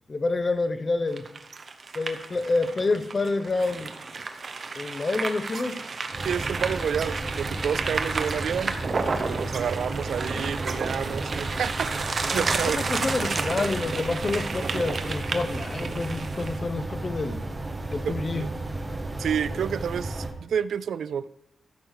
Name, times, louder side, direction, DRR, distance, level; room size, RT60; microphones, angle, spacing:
voice 1, 0.1-1.3 1.9-3.9 4.7-5.8 10.3-10.4 12.3-17.4 17.9-18.4, left 3 dB, 35° left, 10 dB, 0.9 m, -28 dB
sound 1, 1.1-16.6, right 4 dB, 50° right, 1.0 m, -32 dB
sound 2, 6.1-20.3, right 2 dB, 25° right, 1.4 m, -34 dB
voice 2, 6.2-8.8 9.3-12.8 18.0-18.5 19.2-21.3, right 8 dB, 90° right, 17 dB, 0.4 m, -29 dB
14.0 x 6.2 x 4.8 m, 0.76 s
wide cardioid pair, 105°, 0 cm